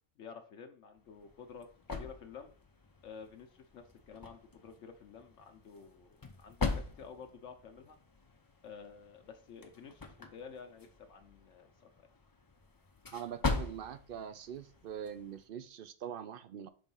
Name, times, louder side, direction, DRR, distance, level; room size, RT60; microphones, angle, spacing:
voice 1, 0.2-1.7 1.9-2.5 3.0-8.0 8.6-11.9, left 6 dB, 75° left, 5 dB, 1.0 m, -51 dB
sound 1, 1.0-15.5, left 4 dB, 25° left, 0.5 m, -42 dB
voice 2, 13.1-16.7, right 9 dB, 60° right, 12 dB, 0.6 m, -43 dB
5.2 x 3.6 x 5.4 m, 0.41 s
omnidirectional pair, 1.3 m